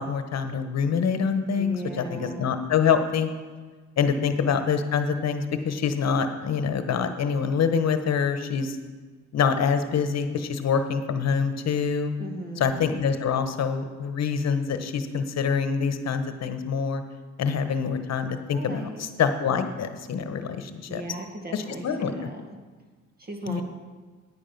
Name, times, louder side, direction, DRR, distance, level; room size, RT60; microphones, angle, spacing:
voice 1, 0.0-3.3 4.0-8.8 9.3-12.1 12.6-17.0 17.4-21.0 21.5-22.1 23.5-23.6, left 6 dB, 60° left, 8 dB, 1.1 m, -25 dB
voice 2, 1.6-2.4 12.2-12.7 18.5-19.1 20.9-22.4 23.2-23.6, right 1 dB, 30° right, 3 dB, 1.8 m, -37 dB
9.9 x 9.0 x 5.8 m, 1.4 s
cardioid pair, 90°, 30 cm